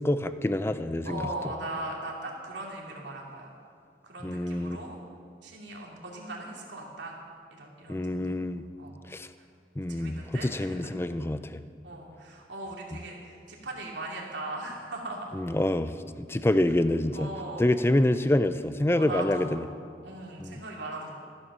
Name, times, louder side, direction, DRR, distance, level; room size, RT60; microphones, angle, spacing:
voice 1, 0.0-1.2 4.2-4.8 7.9-8.6 9.1-9.3 9.8-11.6 15.3-16.0 16.3-17.3 17.6-19.7 20.4-20.6, left 1 dB, 15° left, 12 dB, 0.4 m, -26 dB
voice 2, 1.0-3.5 4.0-5.0 5.4-7.2 7.5-8.4 8.8-9.0 9.4-9.5 9.8-10.9 11.8-15.4 17.1-17.7 18.9-19.6 20.0-21.1, right 2 dB, 80° right, -2 dB, 2.7 m, -39 dB
14.5 x 11.5 x 6.2 m, 2.3 s
head